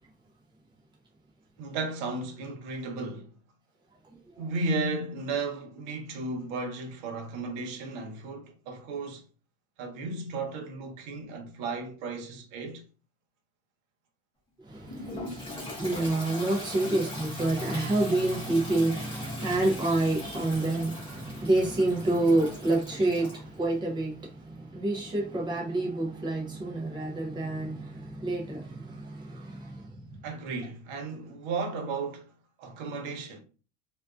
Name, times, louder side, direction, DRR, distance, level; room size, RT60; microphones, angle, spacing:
voice 1, 1.6-3.3 4.4-9.2 9.8-12.8 30.2-32.3 32.6-33.4, right 3 dB, 75° right, 0.9 m, -34 dB
voice 2, 14.6-30.1, right 2 dB, 15° right, 0.4 m, -28 dB
Toilet flush, 14.9-23.4, left 1 dB, 15° left, 0.7 m, -41 dB
2.3 x 2.3 x 2.3 m
cardioid pair, 170°, 36 cm